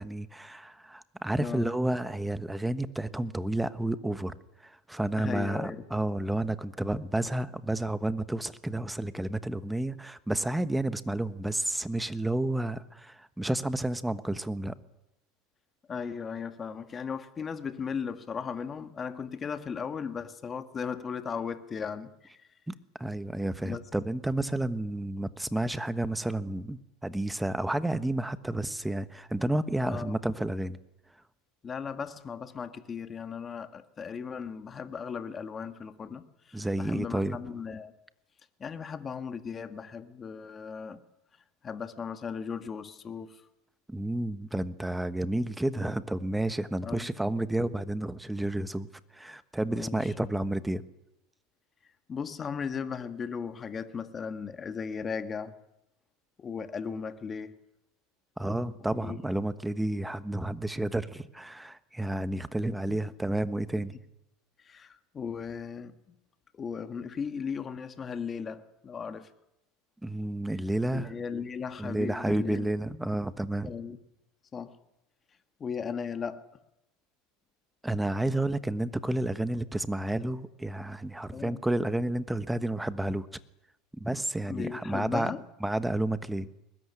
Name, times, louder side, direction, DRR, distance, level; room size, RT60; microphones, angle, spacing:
voice 1, 0.0-4.4 4.6-14.7 22.7-30.8 36.5-37.4 43.9-48.9 49.1-50.8 58.4-63.9 70.0-71.1 71.8-73.7 77.8-83.3 84.0-85.3 85.6-86.5, right 1 dB, 5° right, 1.2 m, -31 dB
voice 2, 5.2-5.8 15.9-22.1 23.6-23.8 29.8-30.1 31.6-37.9 38.6-41.0 41.6-43.4 46.8-47.1 49.7-50.1 52.1-55.6 56.4-57.5 58.8-59.2 62.9-63.0 63.7-63.9 64.6-66.1 66.5-69.3 70.9-72.7 73.6-74.0 74.5-74.8 75.6-76.5 81.3-81.6 84.5-85.4, left 6 dB, 25° left, 1.7 m, -37 dB
22.0 x 20.5 x 9.9 m
supercardioid pair, 130°, 0 cm